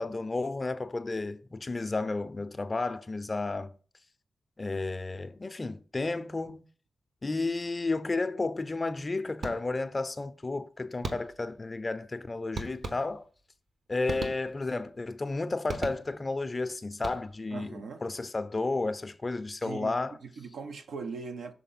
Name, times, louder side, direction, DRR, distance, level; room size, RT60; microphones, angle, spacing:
voice 1, 0.0-3.7 4.6-6.7 7.2-13.2 13.9-20.2, left 3 dB, 35° left, 0.5 m, -32 dB
sound 1, 9.4-10.0 11.0-11.6 12.5-13.4 14.0-14.8 15.7-16.4 16.9-17.6, right 3 dB, 60° right, 1.0 m, -39 dB
voice 2, 17.5-18.0 19.6-20.0 20.2-21.5, right 5 dB, 75° right, 0.6 m, -40 dB
6.4 x 3.8 x 4.1 m
cardioid pair, 60°, 0 cm